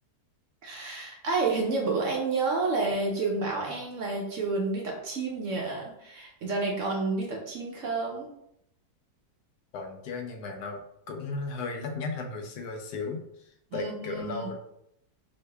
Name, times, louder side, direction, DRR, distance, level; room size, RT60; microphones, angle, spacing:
voice 1, 0.6-8.3 13.7-14.5, right 3 dB, 65° right, -1 dB, 0.8 m, -30 dB
voice 2, 9.7-10.8 11.1-14.5, left 4 dB, 85° left, 4 dB, 1.1 m, -35 dB
4.0 x 2.7 x 2.2 m, 0.77 s
omnidirectional pair, 1.7 m